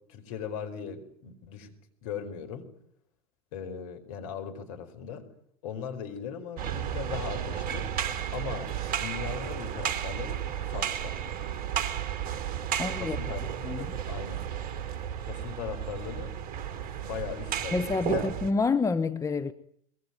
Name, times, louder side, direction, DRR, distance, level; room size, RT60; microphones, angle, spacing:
voice 1, 0.1-1.7 2.0-2.7 3.5-5.2 5.6-7.9 8.3-11.1 13.0-14.5 15.2-16.3 17.0-18.3, left 8 dB, 60° left, 4.8 m, -39 dB
sound 1, 6.6-18.5, right 9 dB, 45° right, 3.2 m, -33 dB
voice 2, 12.8-13.9 17.7-19.5, left 4 dB, 15° left, 1.2 m, -28 dB
23.5 x 21.5 x 9.4 m
figure-of-eight pair, 80°, 20 cm